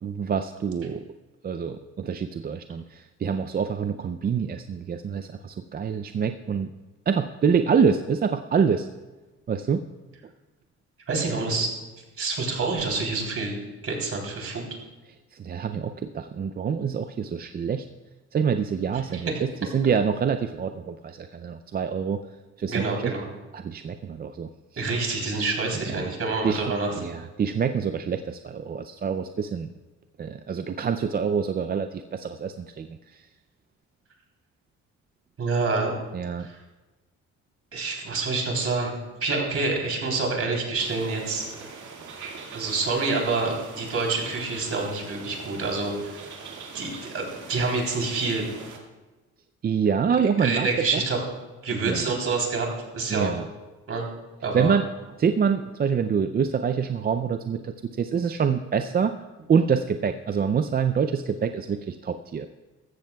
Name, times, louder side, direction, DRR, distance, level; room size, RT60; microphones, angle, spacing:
voice 1, 0.0-1.0 1.4-6.7 7.1-8.9 9.5-9.8 15.3-17.9 18.3-22.2 22.6-23.1 23.5-24.9 25.3-25.4 25.9-26.1 26.4-26.7 26.9-29.7 30.2-33.2 36.1-36.5 49.6-51.0 51.7-52.1 53.1-53.5 54.5-54.9 55.2-59.2 59.5-62.5, right 6 dB, 30° right, 8 dB, 0.4 m, -26 dB
voice 2, 11.1-11.7 12.2-13.6 13.8-14.6 19.1-19.2 22.7-23.3 24.8-26.9 35.4-36.0 36.4-36.5 37.7-41.5 42.5-45.9 46.7-48.4 50.4-51.2 51.6-52.7 52.9-53.4 53.9-54.1 54.4-54.8, right 3 dB, 50° right, 0 dB, 3.4 m, -27 dB
sound 1, 40.8-48.8, right 5 dB, 75° right, 2.0 m, -42 dB
15.0 x 14.0 x 2.3 m, 1.2 s
cardioid pair, 90°, 30 cm